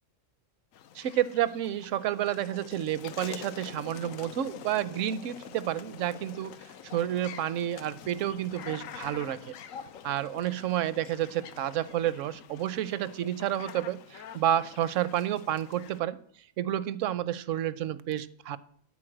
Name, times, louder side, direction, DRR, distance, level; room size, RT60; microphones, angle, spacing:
sound 1, 0.7-16.0, left 9 dB, 85° left, 1.1 m, -46 dB
voice 1, 0.9-6.5 6.8-9.5 10.0-16.2 16.6-18.6, right 11 dB, 75° right, 17 dB, 0.9 m, -30 dB
12.5 x 4.5 x 7.7 m, 0.62 s
omnidirectional pair, 1.4 m